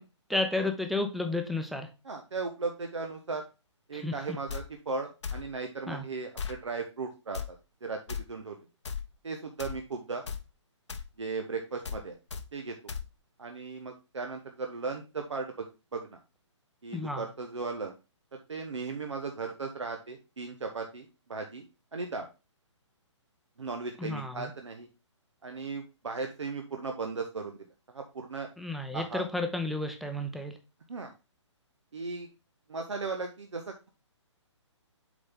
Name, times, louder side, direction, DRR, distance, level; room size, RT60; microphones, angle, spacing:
voice 1, 0.3-1.9 3.9-4.4 5.9-6.0 16.9-17.2 24.0-24.5 28.6-30.6, left 2 dB, ahead, 5 dB, 0.7 m, -32 dB
voice 2, 2.0-3.4 3.9-7.4 7.8-8.6 9.2-10.2 11.2-12.1 12.5-12.8 13.4-15.7 15.9-16.2 16.8-17.9 18.3-21.6 21.9-22.3 23.6-24.9 25.4-28.5 28.9-29.2 30.9-31.1 31.9-32.3 32.7-33.9, right 4 dB, 70° right, 4 dB, 1.0 m, -37 dB
sound 1, 4.5-4.6 5.2-5.4 6.4-6.6 7.3-7.5 8.1-8.2 8.8-9.0 9.6-9.8 10.3-10.4 10.9-11.1 11.8-12.0 12.3-12.4 12.9-13.0, left 6 dB, 70° left, 0.9 m, -36 dB
7.6 x 4.1 x 3.7 m, 0.30 s
figure-of-eight pair, 135°, 16 cm